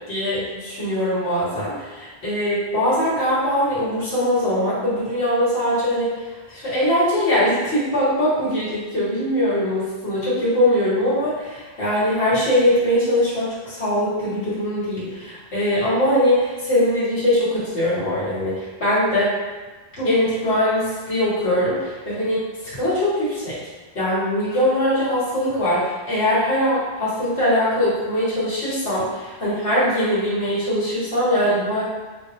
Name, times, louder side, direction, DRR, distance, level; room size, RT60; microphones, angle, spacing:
voice 1, 0.1-6.1 6.5-19.3 20.0-22.4 22.7-23.6 23.9-31.8, left 1 dB, 85° left, -10 dB, 1.5 m, -21 dB
3.9 x 2.4 x 2.9 m, 1.2 s
omnidirectional pair, 1.1 m